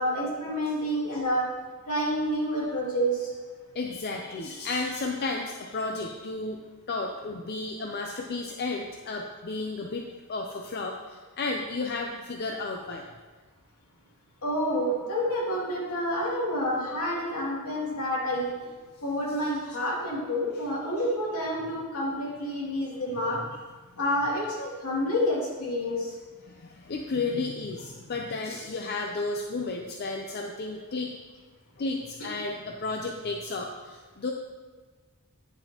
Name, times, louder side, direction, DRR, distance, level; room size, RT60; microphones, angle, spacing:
voice 1, 0.0-1.4 1.9-3.3 14.4-18.5 19.0-23.4 24.0-26.1, equal, 80° left, -5 dB, 2.5 m, -28 dB
voice 2, 3.7-6.6 6.9-13.0 26.4-31.1 31.8-34.3, left 3 dB, 50° left, 1 dB, 0.5 m, -33 dB
9.7 x 6.5 x 2.9 m, 1.4 s
head